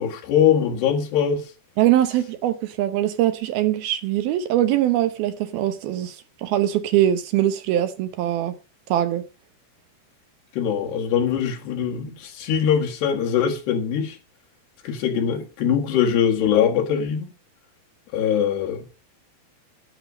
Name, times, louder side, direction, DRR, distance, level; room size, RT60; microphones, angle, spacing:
voice 1, 0.0-1.5 10.5-14.2 14.8-17.3 18.1-18.9, left 8 dB, 75° left, 3.9 m, -22 dB
voice 2, 1.8-6.2 6.4-8.5 8.9-9.2, right 12 dB, 75° right, 2.6 m, -22 dB
11.5 x 10.5 x 5.2 m
omnidirectional pair, 4.8 m